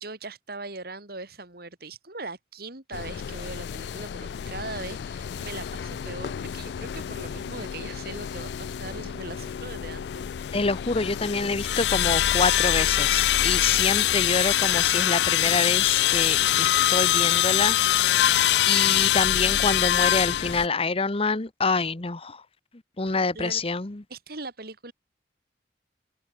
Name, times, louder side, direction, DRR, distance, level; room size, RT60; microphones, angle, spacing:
voice 1, 0.0-10.2 23.1-23.6 24.1-24.9, right 3 dB, 60° right, 4.5 m, -40 dB
sound 1, 2.9-20.7, left 12 dB, 70° left, 0.3 m, -25 dB
voice 2, 10.5-18.2 18.7-22.4 23.0-24.0, left 4 dB, 35° left, 1.0 m, -27 dB
head